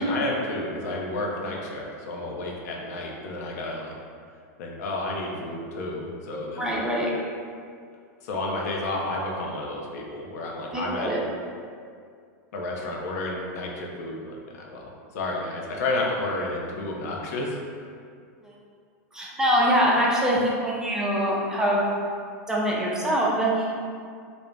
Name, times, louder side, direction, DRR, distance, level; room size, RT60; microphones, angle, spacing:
voice 1, 0.0-3.9 4.6-6.8 8.2-11.1 12.5-17.6, left 2 dB, 70° left, -1 dB, 0.5 m, -31 dB
voice 2, 6.6-7.1 10.7-11.2 18.4-18.5 19.1-21.8 22.5-23.7, equal, 5° right, -5 dB, 0.4 m, -23 dB
2.4 x 2.0 x 3.2 m, 2.2 s
supercardioid pair, 140°, 9 cm